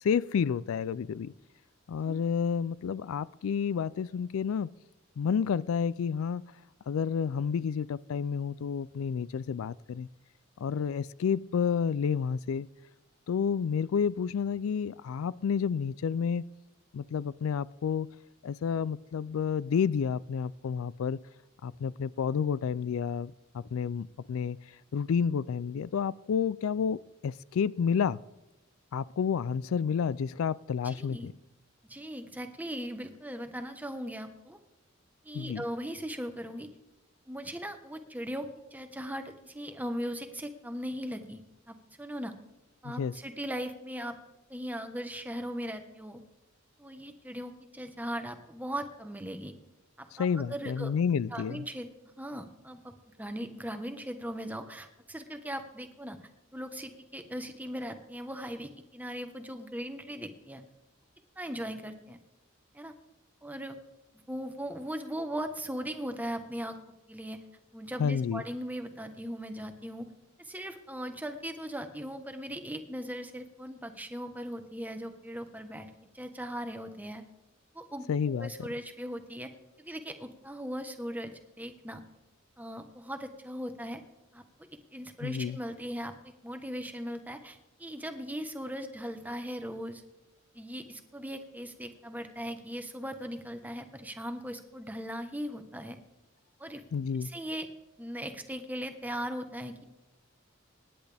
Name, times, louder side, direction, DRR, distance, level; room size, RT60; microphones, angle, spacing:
voice 1, 0.0-1.3 1.9-4.7 5.2-6.4 6.9-10.1 10.6-12.7 13.3-16.4 16.9-18.1 18.4-21.2 21.6-24.6 24.9-28.2 28.9-31.3 35.3-35.6 42.8-43.1 50.1-51.6 68.0-68.4 78.1-78.7 85.2-85.6 96.9-97.3, left 6 dB, 85° left, 0.4 m, -30 dB
voice 2, 30.8-31.3 31.9-34.6 35.2-36.7 37.3-41.4 41.7-42.3 42.8-44.2 44.5-46.2 46.8-49.5 50.0-50.9 51.3-51.9 52.2-56.2 56.5-60.6 61.4-62.2 62.7-62.9 63.4-63.8 64.3-66.8 67.1-67.4 67.7-70.1 70.4-77.2 77.7-78.1 78.3-79.5 79.8-82.0 82.6-84.0 84.3-90.0 90.5-96.0 96.6-96.8 97.2-97.7 98.0-99.8, equal, 10° right, 1.1 m, -39 dB
26.0 x 10.5 x 3.4 m
head